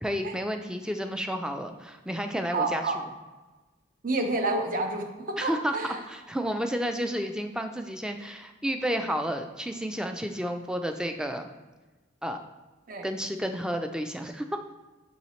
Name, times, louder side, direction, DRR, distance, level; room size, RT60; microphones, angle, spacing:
voice 1, 0.0-3.1 5.4-5.8 6.1-11.5 12.2-12.4 13.0-14.6, equal, 5° right, 6 dB, 0.3 m, -31 dB
voice 2, 2.5-3.0 4.0-5.9 12.9-13.1, right 2 dB, 45° right, 4 dB, 0.8 m, -29 dB
7.0 x 5.6 x 3.1 m, 1.2 s
head